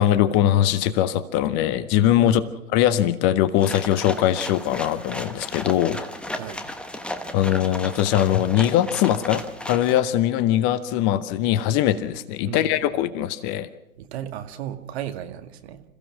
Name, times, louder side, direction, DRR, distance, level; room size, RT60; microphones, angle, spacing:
voice 1, 0.0-2.4 2.7-6.0 7.3-13.7, left 12 dB, 25° left, 15 dB, 0.8 m, -21 dB
sound 1, 3.6-10.0, left 1 dB, ahead, 1.1 m, -34 dB
voice 2, 12.5-12.8 14.0-15.8, right 10 dB, 50° right, 8 dB, 2.1 m, -34 dB
27.5 x 15.5 x 6.1 m, 0.90 s
hypercardioid pair, 120°, 42 cm